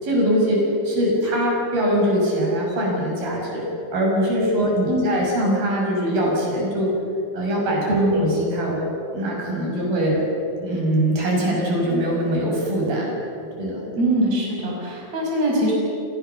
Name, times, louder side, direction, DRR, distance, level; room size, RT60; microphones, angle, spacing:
voice 1, 0.0-3.6 3.9-6.9 7.3-8.8 9.1-10.2 10.6-13.1 13.6-13.8, equal, 65° right, -2 dB, 8.2 m, -22 dB
voice 2, 13.9-15.7, right 1 dB, 45° right, -3 dB, 7.1 m, -22 dB
29.5 x 28.5 x 7.1 m, 3.0 s
omnidirectional pair, 4.5 m